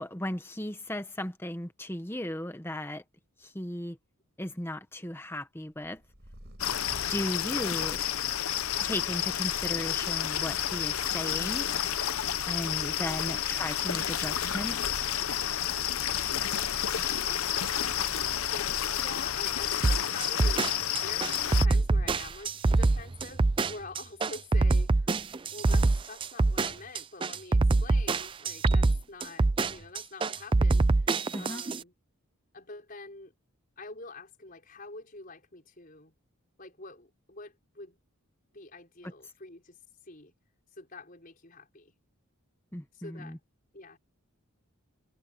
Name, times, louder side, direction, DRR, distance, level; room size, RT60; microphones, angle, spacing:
voice 1, 0.0-3.0 3.4-4.0 4.4-6.0 7.1-8.0 8.8-11.7 12.4-15.0 31.3-31.6 39.0-39.1 42.7-43.4, left 1 dB, 10° left, 1.1 m, -36 dB
Purr, 5.8-22.7, equal, 50° right, 5.9 m, -47 dB
sound 1, 6.6-21.7, left 10 dB, 70° left, 0.9 m, -30 dB
voice 2, 13.0-13.4 17.0-25.3 25.5-31.9 32.5-33.3 33.8-36.1 36.6-38.0 38.5-39.8 40.0-40.3 40.8-42.0 42.9-43.4 43.7-44.0, left 3 dB, 40° left, 5.4 m, -46 dB
sound 2, 19.8-31.8, right 3 dB, 20° right, 0.4 m, -25 dB
head